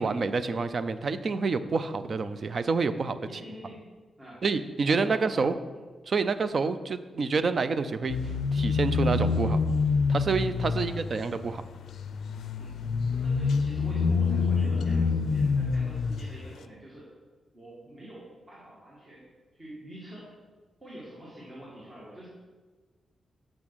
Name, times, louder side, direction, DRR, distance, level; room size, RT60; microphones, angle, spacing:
voice 1, 0.0-3.2 4.4-5.5 6.1-8.2 8.5-9.6 10.1-11.6, right 4 dB, 45° right, 12 dB, 0.4 m, -28 dB
voice 2, 3.2-3.8 4.2-4.4 4.9-5.4 10.8-11.0 12.6-12.8 13.1-17.1 17.5-20.3 20.8-22.3, right 1 dB, 25° right, -7 dB, 2.0 m, -46 dB
sound 1, 8.1-16.5, left 4 dB, 85° left, 0.4 m, -27 dB
6.2 x 6.1 x 6.1 m, 1.3 s
wide cardioid pair, 145°, 0 cm